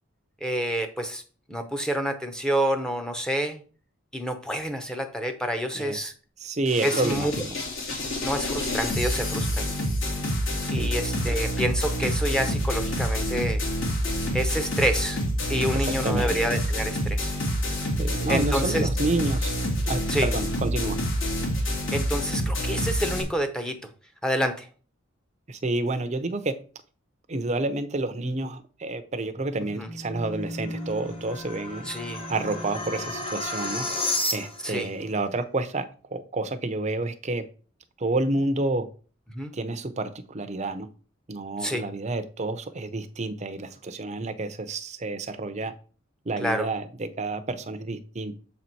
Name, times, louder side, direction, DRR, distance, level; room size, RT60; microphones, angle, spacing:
voice 1, 0.4-1.2 1.5-3.6 4.1-6.1 6.8-7.3 8.2-9.7 10.7-13.6 14.3-15.2 15.5-17.3 18.3-18.9 20.1-20.3 21.9-23.8 24.2-24.7 29.8-29.9 31.9-32.2 34.6-34.9 39.3-39.5 41.6-41.9 46.4-46.7, equal, 5° left, 5 dB, 0.7 m, -28 dB
voice 2, 6.4-7.3 10.6-11.4 15.7-16.4 18.0-19.6 19.8-21.0 25.5-26.5 27.3-37.4 38.0-38.9 39.5-40.9 41.3-45.7 46.3-48.3, right 2 dB, 35° right, 9 dB, 0.6 m, -29 dB
sound 1, 6.7-23.2, equal, 70° left, 2.2 m, -27 dB
sound 2, 29.7-34.8, left 2 dB, 30° left, 1.2 m, -32 dB
7.0 x 4.1 x 4.5 m, 0.39 s
head